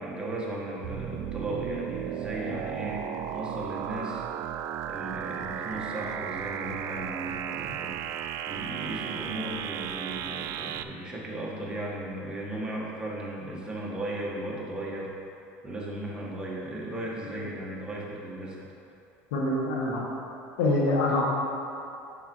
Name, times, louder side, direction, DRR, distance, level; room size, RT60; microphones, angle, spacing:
voice 1, 0.0-3.0 3.3-4.2 4.9-8.0 8.5-15.1 15.6-18.6, right 1 dB, 15° right, -4 dB, 1.5 m, -36 dB
sound 1, 0.8-10.8, right 9 dB, 55° right, 0.4 m, -35 dB
voice 2, 19.3-20.1 20.6-21.2, left 2 dB, 85° left, -3 dB, 1.7 m, -25 dB
7.0 x 5.8 x 4.5 m, 2.7 s
supercardioid pair, 110°, 7 cm